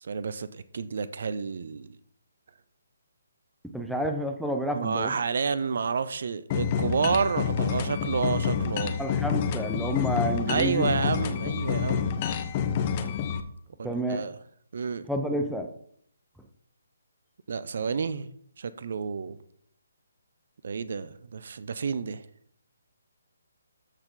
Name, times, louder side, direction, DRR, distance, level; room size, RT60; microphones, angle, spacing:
voice 1, 0.0-2.0 4.7-9.0 10.5-12.1 13.8-14.4 14.7-15.1 17.5-18.3 18.6-19.4 20.6-22.3, right 5 dB, 55° right, 14 dB, 0.6 m, -30 dB
voice 2, 3.7-5.1 9.0-10.9 13.8-14.3 15.1-15.7, equal, ahead, 4 dB, 0.8 m, -29 dB
sound 1, 6.5-13.4, left 7 dB, 30° left, 0.8 m, -28 dB
13.0 x 4.7 x 3.9 m, 0.65 s
figure-of-eight pair, 140°, 0 cm